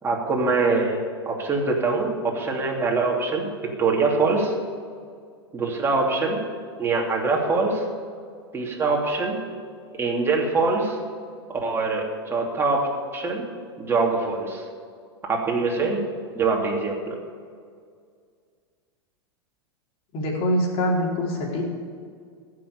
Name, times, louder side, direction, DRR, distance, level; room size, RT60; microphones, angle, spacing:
voice 1, 0.0-1.0 1.2-3.5 3.8-4.5 5.5-6.4 6.8-7.8 8.5-9.4 10.0-11.0 11.6-12.9 13.1-13.5 13.8-14.6 15.3-16.0 16.3-17.1, right 3 dB, 15° right, -2 dB, 3.1 m, -23 dB
voice 2, 20.1-21.6, left 1 dB, 45° left, -3 dB, 4.4 m, -24 dB
15.5 x 6.9 x 8.5 m, 2.1 s
hypercardioid pair, 100°, 14 cm